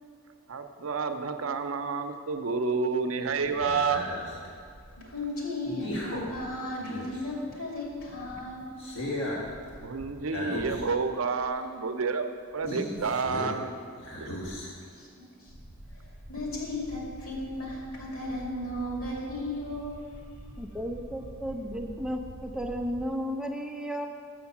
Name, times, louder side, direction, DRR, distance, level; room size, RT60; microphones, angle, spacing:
voice 1, 0.5-4.1 9.8-12.2 12.5-13.7 14.2-14.3, right 4 dB, 80° right, 7 dB, 0.6 m, -29 dB
sound 1, 3.3-7.5 7.9-11.1 11.4-11.5 12.6-13.7 14.0-15.0 15.5-23.0, left 1 dB, 65° left, 2.0 m, -39 dB
voice 2, 5.0-8.7 14.9-15.5 15.9-16.0 16.3-20.0, left 1 dB, 90° left, -3 dB, 2.6 m, -35 dB
voice 3, 20.6-24.1, equal, 5° right, 3 dB, 0.5 m, -34 dB
6.4 x 6.3 x 7.1 m, 2.2 s
head